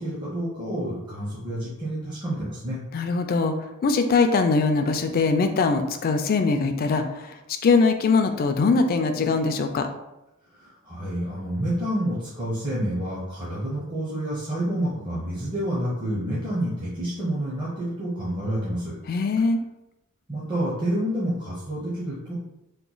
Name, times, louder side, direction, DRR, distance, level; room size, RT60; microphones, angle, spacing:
voice 1, 0.0-2.8 10.5-19.0 20.3-22.3, right 1 dB, 20° right, -7 dB, 0.7 m, -29 dB
voice 2, 2.9-3.5 3.8-7.3 7.6-9.9 19.1-19.6, left 4 dB, 45° left, 7 dB, 0.3 m, -22 dB
3.0 x 2.2 x 3.8 m, 0.93 s
head